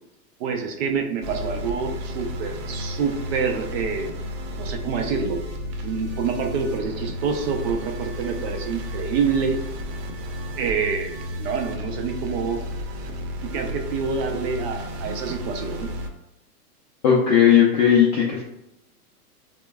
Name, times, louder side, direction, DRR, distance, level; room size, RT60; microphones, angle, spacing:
voice 1, 0.4-4.1 4.6-5.4 5.8-9.7 10.6-12.6 13.4-15.9, right 5 dB, 40° right, 3 dB, 0.5 m, -27 dB
sound 1, 1.2-16.1, equal, 80° right, 0.7 m, -33 dB
voice 2, 17.0-18.4, left 8 dB, 30° left, -5 dB, 0.4 m, -16 dB
4.3 x 2.1 x 2.2 m, 0.83 s
hypercardioid pair, 130°, 48 cm